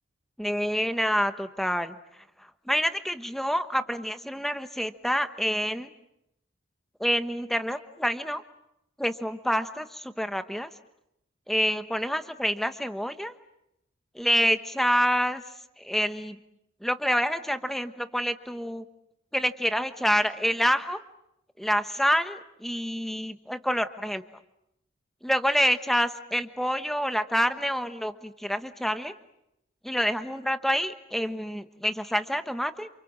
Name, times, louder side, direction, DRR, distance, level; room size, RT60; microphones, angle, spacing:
voice 1, 0.4-5.9 7.0-8.4 9.0-10.7 11.5-13.3 14.1-15.4 15.8-16.4 16.8-18.8 19.3-21.0 21.6-24.2 25.2-29.1 29.8-32.9, equal, ahead, 9 dB, 1.1 m, -27 dB
28.5 x 28.0 x 7.5 m, 0.82 s
head